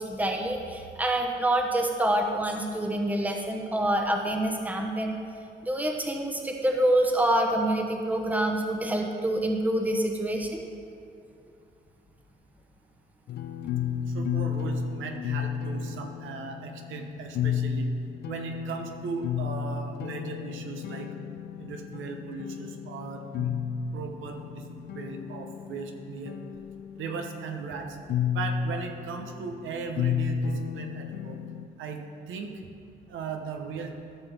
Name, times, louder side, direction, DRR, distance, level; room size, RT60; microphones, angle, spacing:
voice 1, 0.0-5.2 5.6-10.5, right 1 dB, 10° right, 2 dB, 0.9 m, -26 dB
sound 1, 13.3-31.7, left 7 dB, 55° left, 0.4 m, -33 dB
voice 2, 14.1-17.9 18.2-21.1 21.6-23.5 23.9-24.6 24.9-26.3 27.0-28.0 28.3-31.4 31.8-32.0 32.3-32.6 33.1-33.9, right 4 dB, 80° right, 4 dB, 0.9 m, -37 dB
13.0 x 6.0 x 3.5 m, 2.5 s
cardioid pair, 90°, 20 cm